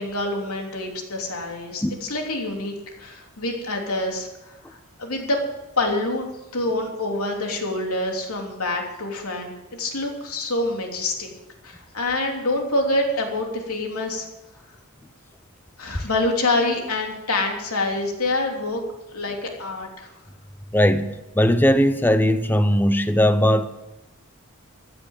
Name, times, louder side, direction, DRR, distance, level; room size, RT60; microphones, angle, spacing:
voice 1, 0.0-5.4 5.8-6.3 6.5-11.3 11.6-14.3 15.8-18.8 19.1-20.1, left 2 dB, 85° left, 3.1 m, -26 dB
voice 2, 20.7-23.7, equal, 10° left, 0.7 m, -19 dB
15.0 x 9.9 x 7.3 m
head